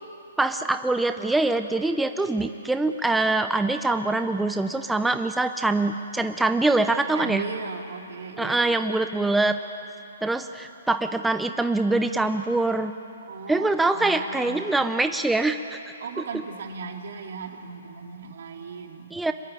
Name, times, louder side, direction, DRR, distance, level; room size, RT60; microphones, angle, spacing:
voice 1, 0.4-7.4 8.4-9.6 10.2-12.9 13.5-15.8 19.1-19.3, right 2 dB, 5° right, 8 dB, 0.6 m, -24 dB
voice 2, 6.9-8.8 13.3-14.9 16.0-19.1, right 5 dB, 70° right, 3 dB, 2.7 m, -37 dB
25.0 x 21.5 x 9.0 m, 2.9 s
hypercardioid pair, 145°, 0 cm